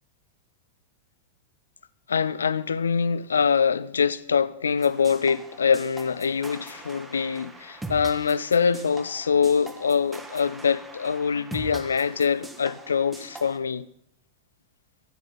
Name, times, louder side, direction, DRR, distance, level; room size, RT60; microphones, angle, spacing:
voice 1, 2.1-13.9, left 6 dB, 70° left, 0.4 m, -24 dB
sound 1, 4.8-13.6, right 3 dB, 10° right, 1.2 m, -42 dB
13.5 x 9.1 x 3.9 m
figure-of-eight pair, 90°, 0 cm